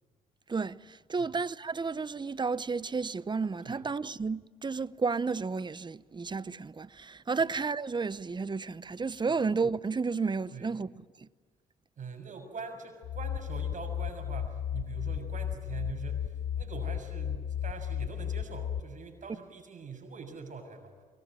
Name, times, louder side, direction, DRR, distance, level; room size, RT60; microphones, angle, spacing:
voice 1, 0.5-10.9, right 4 dB, 25° right, 0.8 m, -32 dB
voice 2, 12.0-21.0, right 4 dB, 50° right, 6.9 m, -43 dB
sound 1, 13.0-18.8, left 9 dB, 75° left, 0.9 m, -34 dB
23.5 x 20.0 x 9.9 m
supercardioid pair, 60°, 17 cm